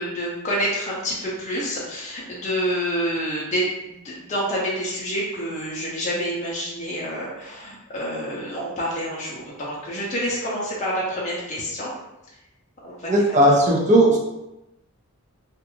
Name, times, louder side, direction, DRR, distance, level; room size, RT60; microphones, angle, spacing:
voice 1, 0.0-11.9 12.8-13.1, equal, 30° left, -5 dB, 0.5 m, -28 dB
voice 2, 13.1-14.2, right 1 dB, 35° right, -2 dB, 0.5 m, -16 dB
2.5 x 2.3 x 2.9 m, 0.94 s
head